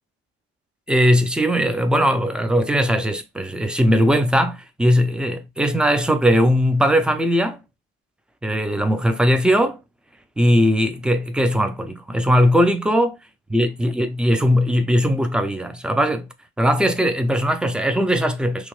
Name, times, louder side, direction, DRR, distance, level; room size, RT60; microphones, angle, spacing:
voice 1, 0.9-7.6 8.4-9.8 10.4-13.2 13.5-16.3 16.6-18.7, equal, 5° right, 0.4 m, -19 dB
2.9 x 2.2 x 3.1 m
cardioid pair, 90°, 30 cm